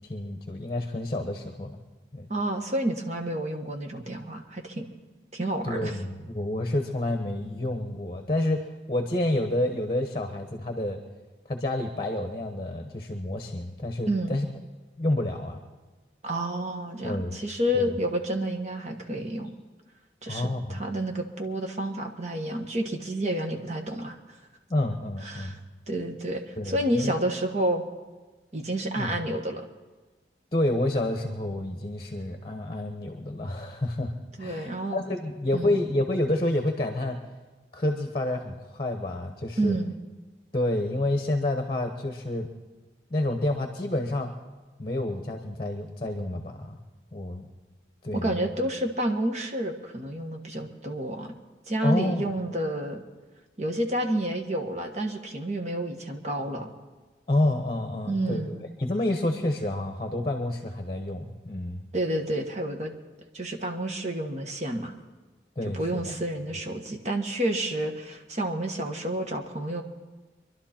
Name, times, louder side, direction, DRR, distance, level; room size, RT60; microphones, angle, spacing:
voice 1, 0.0-1.8 2.1-2.3 5.6-8.6 8.9-11.0 11.5-14.5 15.0-15.6 17.0-17.4 17.7-18.0 20.3-20.8 24.7-25.5 26.6-27.1 29.0-29.1 30.5-34.1 34.4-37.2 37.7-39.8 40.5-42.5 43.1-44.3 44.8-46.8 47.1-47.5 48.0-48.5 51.8-52.2 57.3-58.4 58.8-61.8 65.6-66.1, left 1 dB, 30° left, 5 dB, 1.1 m, -29 dB
voice 2, 2.3-4.9 5.3-6.0 14.1-14.4 16.2-19.5 20.2-24.2 25.2-25.6 25.9-27.8 28.5-29.6 34.4-35.0 35.5-35.8 39.6-39.9 48.1-51.3 51.7-53.0 53.6-56.7 58.0-58.6 61.9-62.9 63.3-64.9 65.7-69.8, right 1 dB, 40° right, 4 dB, 1.4 m, -29 dB
24.5 x 11.5 x 4.4 m, 1.3 s
head